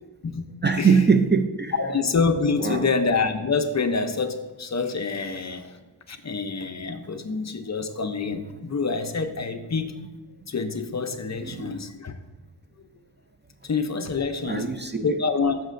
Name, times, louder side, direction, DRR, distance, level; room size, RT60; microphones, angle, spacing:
voice 1, 0.6-1.7 2.6-2.9 8.5-8.6 11.4-11.8 14.5-15.0, right 5 dB, 25° right, 7 dB, 0.4 m, -22 dB
voice 2, 1.7-5.8 6.1-9.9 10.5-12.1 13.6-14.7 15.0-15.6, left 4 dB, 40° left, 8 dB, 0.6 m, -26 dB
14.0 x 6.4 x 2.5 m, 1.2 s
wide cardioid pair, 105°, 41 cm